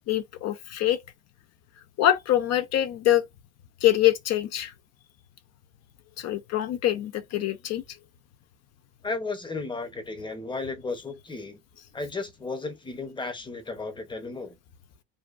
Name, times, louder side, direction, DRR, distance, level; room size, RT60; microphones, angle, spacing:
voice 1, 0.1-1.0 2.0-3.3 3.8-4.7 6.2-7.8, left 12 dB, 50° left, 0.5 m, -24 dB
voice 2, 9.0-11.6 11.9-14.6, left 3 dB, 15° left, 0.8 m, -34 dB
2.6 x 2.2 x 2.5 m
cardioid pair, 110°, 34 cm